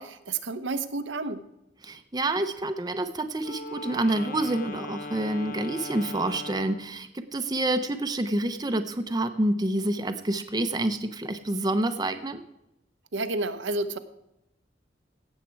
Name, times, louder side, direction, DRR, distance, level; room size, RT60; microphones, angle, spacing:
voice 1, 0.0-1.4 13.1-14.0, right 3 dB, 85° right, 9 dB, 0.9 m, -30 dB
voice 2, 1.8-12.4, right 1 dB, 20° right, 7 dB, 0.7 m, -28 dB
Wind instrument woodwind instrument, 3.4-6.9, left 2 dB, 45° left, 1.1 m, -39 dB
17.0 x 7.4 x 4.6 m, 0.86 s
head